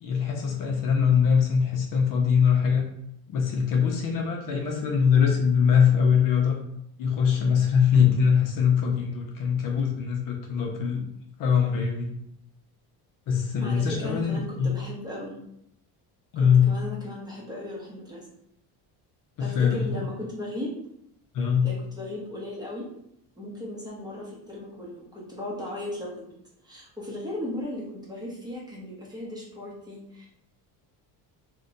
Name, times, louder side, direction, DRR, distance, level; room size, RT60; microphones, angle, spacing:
voice 1, 0.0-2.8 3.3-6.6 7.0-11.0 11.4-12.1 13.3-14.8 16.3-16.7 19.4-20.0 21.3-21.7, left 7 dB, 50° left, 0 dB, 0.6 m, -22 dB
voice 2, 13.6-15.4 16.7-18.2 19.4-20.7 21.6-22.9 23.4-26.1 26.6-30.3, left 1 dB, 10° right, -5 dB, 0.7 m, -36 dB
2.6 x 2.2 x 3.8 m, 0.75 s
cardioid pair, 155°, 42 cm